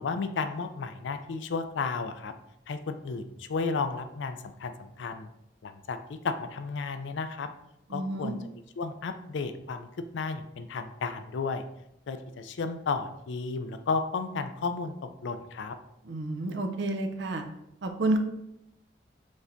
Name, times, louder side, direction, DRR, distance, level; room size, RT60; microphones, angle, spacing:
voice 1, 0.0-2.3 2.7-5.3 5.6-7.5 7.9-8.4 8.8-9.9 10.1-11.6 12.1-14.9 15.2-15.8, left 4 dB, 80° left, 9 dB, 0.4 m, -33 dB
voice 2, 7.9-8.3 16.0-17.4 17.8-18.2, right 2 dB, 70° right, 5 dB, 0.5 m, -30 dB
5.2 x 3.3 x 2.6 m, 0.81 s
head